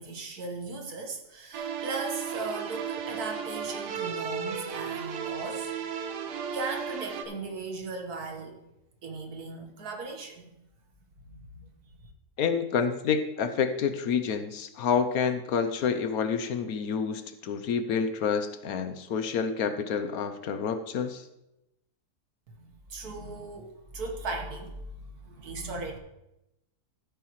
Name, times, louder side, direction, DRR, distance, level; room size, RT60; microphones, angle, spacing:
voice 1, 0.0-5.7 6.5-8.6 9.0-10.5 11.3-11.7 12.0-12.1 22.6-26.0, right 3 dB, 70° right, 3 dB, 1.9 m, -37 dB
sound 1, 1.5-7.2, right 7 dB, 90° right, 1.4 m, -35 dB
voice 2, 12.4-21.3, left 6 dB, 70° left, 9 dB, 1.1 m, -28 dB
14.0 x 8.4 x 3.1 m, 0.88 s
omnidirectional pair, 1.7 m